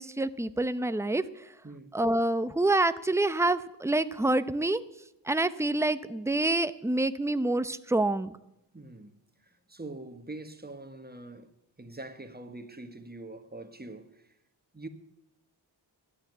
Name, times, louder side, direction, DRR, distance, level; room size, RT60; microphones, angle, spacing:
voice 1, 0.0-1.5 1.9-4.8 5.2-8.4, right 2 dB, 5° right, 0.7 m, -27 dB
voice 2, 1.6-2.0 8.7-11.5 11.8-14.4 14.7-14.9, right 2 dB, 20° right, 1.6 m, -44 dB
13.0 x 9.8 x 9.3 m
cardioid pair, 60°, 44 cm